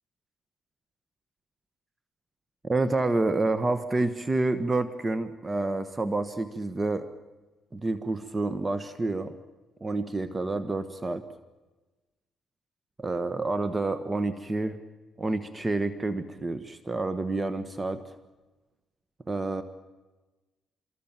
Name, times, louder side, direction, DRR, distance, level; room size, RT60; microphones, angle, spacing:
voice 1, 2.6-7.1 7.7-9.4 9.8-11.2 13.0-14.8 15.2-18.0 19.3-19.6, right 2 dB, 20° right, 11 dB, 1.4 m, -28 dB
26.0 x 23.0 x 7.5 m, 1.2 s
cardioid pair, 90°, 0 cm